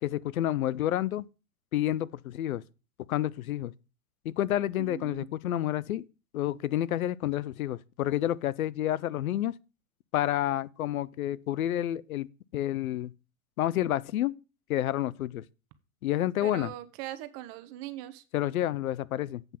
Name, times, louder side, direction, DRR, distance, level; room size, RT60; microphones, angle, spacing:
voice 1, 0.0-1.3 1.7-2.6 3.1-3.7 4.2-6.0 6.3-9.5 10.1-12.3 12.5-13.1 13.6-14.3 14.7-15.4 16.0-16.7 18.3-19.4, left 13 dB, 85° left, 0.7 m, -29 dB
voice 2, 4.8-5.3 16.4-18.2, right 14 dB, 45° right, 1.1 m, -40 dB
8.2 x 5.6 x 7.5 m
hypercardioid pair, 130°, 41 cm